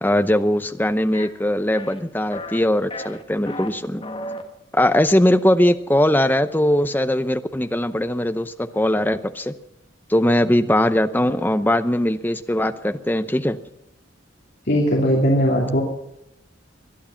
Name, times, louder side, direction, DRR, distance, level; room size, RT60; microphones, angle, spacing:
voice 1, 0.0-4.1 4.7-9.6 10.1-13.6, left 1 dB, 10° left, 10 dB, 0.7 m, -20 dB
sound 1, 1.1-1.3 1.7-2.0 2.3-2.6 2.9-3.7 4.0-4.4, left 1 dB, 25° left, 1.7 m, -33 dB
voice 2, 14.7-15.8, equal, 55° left, -3 dB, 3.0 m, -18 dB
21.0 x 11.5 x 5.8 m, 0.82 s
head